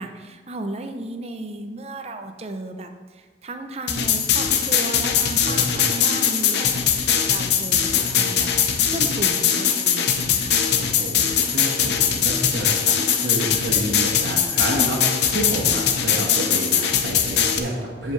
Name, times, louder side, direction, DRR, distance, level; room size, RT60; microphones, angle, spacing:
voice 1, 0.0-10.6, right 2 dB, 35° right, 6 dB, 0.7 m, -34 dB
sound 1, 3.9-17.6, left 8 dB, 75° left, 0.8 m, -21 dB
voice 2, 5.4-6.0 8.0-8.3 10.7-18.1, right 1 dB, 90° right, -4 dB, 1.5 m, -29 dB
14.0 x 5.5 x 3.2 m, 1.5 s
head